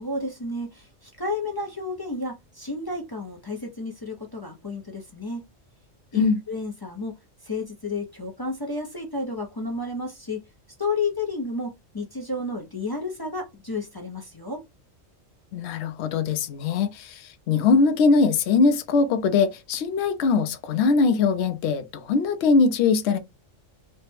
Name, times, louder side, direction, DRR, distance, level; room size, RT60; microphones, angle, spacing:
voice 1, 0.0-5.4 6.1-7.1 7.4-10.5 10.8-14.6, left 3 dB, 30° left, 0.4 m, -31 dB
voice 2, 15.5-23.2, left 4 dB, 65° left, 0.8 m, -21 dB
3.2 x 2.1 x 3.2 m
omnidirectional pair, 1.4 m